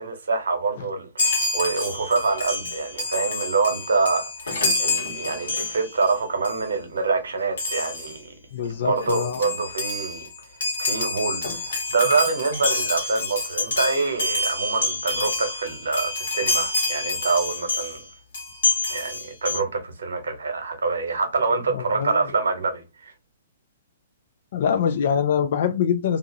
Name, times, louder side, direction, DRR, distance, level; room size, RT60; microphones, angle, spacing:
voice 1, 0.0-8.3 8.8-10.3 10.8-18.0 18.9-23.1, right 4 dB, 65° right, 1.0 m, -26 dB
Chime, 1.2-6.1 6.4-6.7 7.6-8.2 8.7-8.8 9.0-18.0 18.3-19.6, left 3 dB, 65° left, 1.1 m, -27 dB
voice 2, 8.5-9.4 21.7-22.2 24.5-26.2, left 8 dB, 50° left, 0.4 m, -24 dB
2.8 x 2.4 x 2.6 m
figure-of-eight pair, 115°, 0 cm